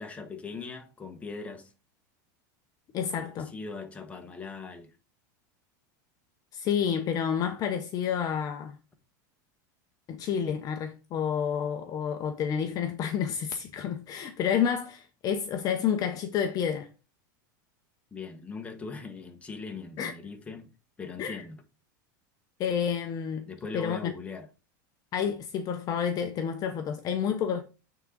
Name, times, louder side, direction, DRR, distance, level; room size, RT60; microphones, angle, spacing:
voice 1, 0.0-1.7 3.2-4.9 18.1-20.7 21.0-21.6 23.5-24.5, left 4 dB, 10° left, 1.2 m, -40 dB
voice 2, 2.9-3.5 6.5-8.8 10.1-16.9 20.0-20.1 21.2-21.4 22.6-23.5 23.7-24.1 25.1-27.6, left 8 dB, 35° left, 0.8 m, -29 dB
8.9 x 3.9 x 3.8 m
supercardioid pair, 135°, 11 cm